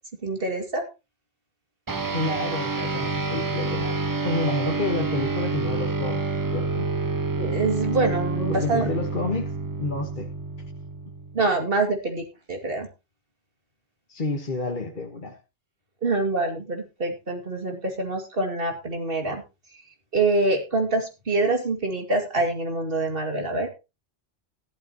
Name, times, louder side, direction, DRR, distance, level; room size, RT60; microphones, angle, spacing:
voice 1, 0.2-0.8 7.4-8.9 11.3-12.9 16.0-19.4 20.1-23.7, right 2 dB, 50° right, 4 dB, 2.6 m, -25 dB
sound 1, 1.9-11.6, right 3 dB, 25° right, 0.6 m, -28 dB
voice 2, 2.1-4.0 4.2-6.2 6.5-6.9 8.5-9.5 9.8-10.3 14.1-15.4, left 2 dB, 45° left, 2 dB, 1.4 m, -29 dB
14.0 x 12.0 x 2.9 m, 0.28 s
omnidirectional pair, 1.2 m